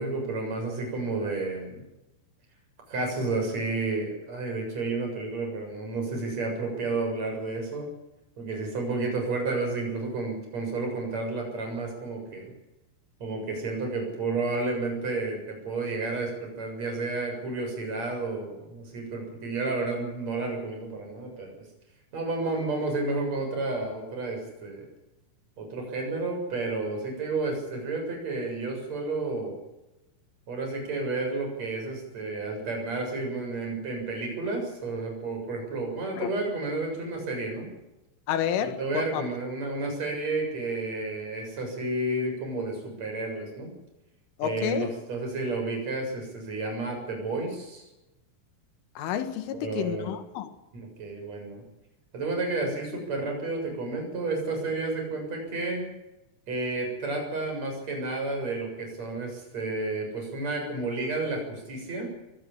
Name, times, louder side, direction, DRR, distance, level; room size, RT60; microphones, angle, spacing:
voice 1, 0.0-1.8 2.9-7.9 8.4-12.5 13.2-21.6 22.1-24.9 25.6-29.6 30.5-37.7 38.6-43.7 44.4-47.9 49.5-50.1 50.7-51.6 52.1-55.9 56.5-62.1, right 3 dB, 30° right, 2 dB, 8.0 m, -31 dB
voice 2, 38.3-39.2 44.4-44.9 49.0-50.5, left 9 dB, 75° left, 9 dB, 4.0 m, -30 dB
23.0 x 17.0 x 8.6 m, 0.95 s
omnidirectional pair, 5.8 m